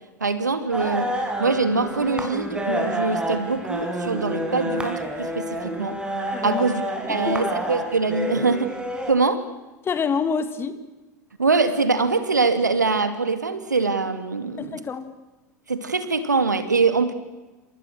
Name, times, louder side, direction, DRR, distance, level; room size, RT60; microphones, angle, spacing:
voice 1, 0.2-1.1 1.4-6.0 6.4-6.8 7.1-8.7 9.1-9.4 11.4-14.8 15.7-17.1, right 4 dB, 80° right, 11 dB, 2.6 m, -23 dB
sound 1, 0.7-9.1, equal, 10° right, 4.9 m, -29 dB
voice 2, 6.3-6.6 7.1-7.5 9.8-10.8 14.6-15.2, left 6 dB, 25° left, 12 dB, 2.1 m, -27 dB
29.5 x 27.0 x 6.6 m, 1.1 s
figure-of-eight pair, 80°, 9 cm